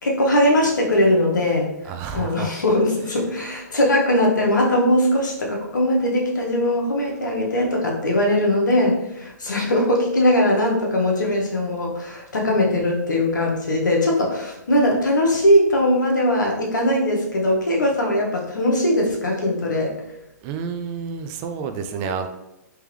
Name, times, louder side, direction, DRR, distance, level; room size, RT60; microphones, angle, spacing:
voice 1, 0.0-1.7 2.1-19.9, left 1 dB, 90° left, -1 dB, 1.1 m, -20 dB
voice 2, 1.8-2.5 20.4-22.3, right 6 dB, 30° right, 7 dB, 0.4 m, -29 dB
3.6 x 3.1 x 3.2 m, 0.88 s
hypercardioid pair, 135°, 10 cm